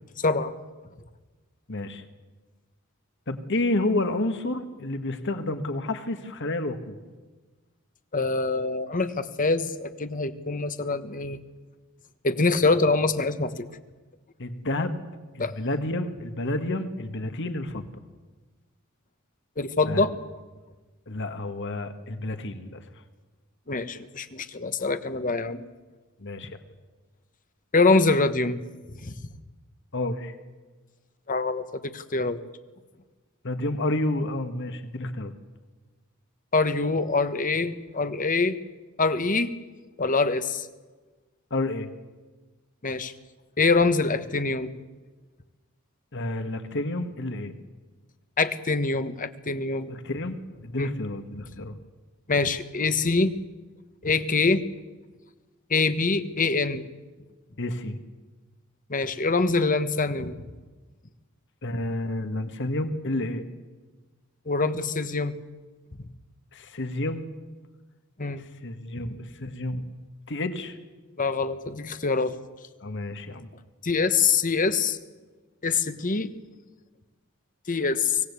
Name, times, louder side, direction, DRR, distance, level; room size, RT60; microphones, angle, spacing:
voice 1, 0.2-0.5 8.1-11.4 12.2-13.7 15.4-15.5 19.6-20.1 23.7-25.6 27.7-28.6 29.0-29.1 31.3-32.4 36.5-38.6 39.0-39.5 40.0-40.7 42.8-43.1 43.6-44.7 48.4-49.9 50.8-50.9 52.3-53.3 54.0-54.6 55.7-56.9 58.9-60.4 64.5-65.3 68.2-68.4 71.2-72.3 73.8-75.0 75.6-76.3 77.7-78.2, left 3 dB, 40° left, 10 dB, 1.3 m, -24 dB
voice 2, 1.7-2.0 3.3-7.0 14.4-15.0 15.3-17.9 19.9-20.0 21.1-22.8 26.2-26.6 29.9-30.3 33.4-35.3 41.5-41.9 46.1-47.5 49.9-51.8 57.6-58.0 61.6-63.5 66.5-67.2 68.4-69.9 70.3-70.8 72.8-73.5, left 2 dB, 60° left, 8 dB, 1.8 m, -30 dB
24.5 x 17.5 x 8.3 m, 1.3 s
head